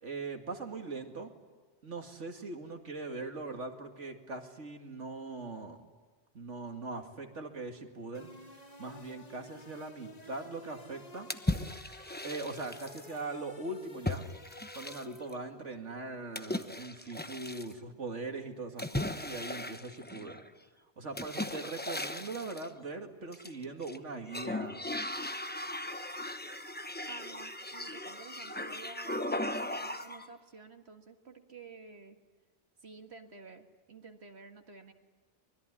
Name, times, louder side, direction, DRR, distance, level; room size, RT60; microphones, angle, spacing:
voice 1, 0.0-1.3 1.8-5.9 6.3-8.3 8.8-11.3 12.2-14.3 14.7-20.4 21.0-24.9, right 3 dB, 80° right, 4 dB, 2.6 m, -41 dB
sound 1, 8.1-15.6, left 2 dB, 35° left, 1.5 m, -53 dB
sound 2, 11.3-13.1 14.0-15.3 16.3-17.7 18.8-20.5 21.2-22.7 23.3-24.0 24.3-30.3, left 1 dB, 10° left, 0.9 m, -37 dB
voice 2, 27.1-32.2 32.8-34.9, right 4 dB, 60° right, 5 dB, 2.1 m, -51 dB
25.5 x 21.0 x 10.0 m, 1.3 s
omnidirectional pair, 1.2 m